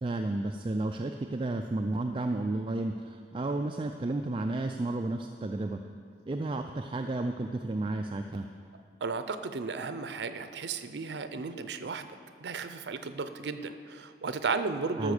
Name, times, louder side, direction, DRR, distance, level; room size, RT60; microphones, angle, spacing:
voice 1, 0.0-5.8 6.3-8.5 15.0-15.1, right 2 dB, 30° right, 5 dB, 0.3 m, -32 dB
voice 2, 9.0-12.1 12.4-15.1, right 4 dB, 75° right, 10 dB, 0.6 m, -34 dB
13.5 x 6.1 x 6.6 m, 2.3 s
head